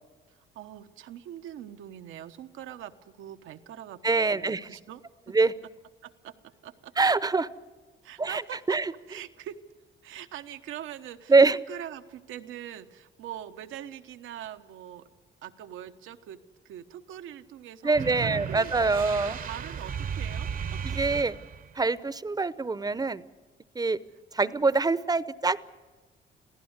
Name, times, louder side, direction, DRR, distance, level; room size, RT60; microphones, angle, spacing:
voice 1, 0.3-4.0 4.3-5.0 5.3-5.4 6.0-6.9 8.0-8.6 9.1-9.6 10.0-15.1 15.4-16.4 16.6-20.8 24.4-24.6, right 11 dB, 85° right, 9 dB, 1.1 m, -43 dB
voice 2, 4.0-4.7 5.3-5.5 7.0-7.5 8.2-8.4 8.7-8.9 11.3-11.6 17.8-19.4 20.8-21.4 21.8-23.2 23.7-24.0 24.3-25.6, right 3 dB, 20° right, 17 dB, 0.8 m, -24 dB
sound 1, 17.9-21.8, right 7 dB, 45° right, 0.9 m, -35 dB
27.0 x 16.0 x 8.1 m, 1.3 s
cardioid pair, 90°, 20 cm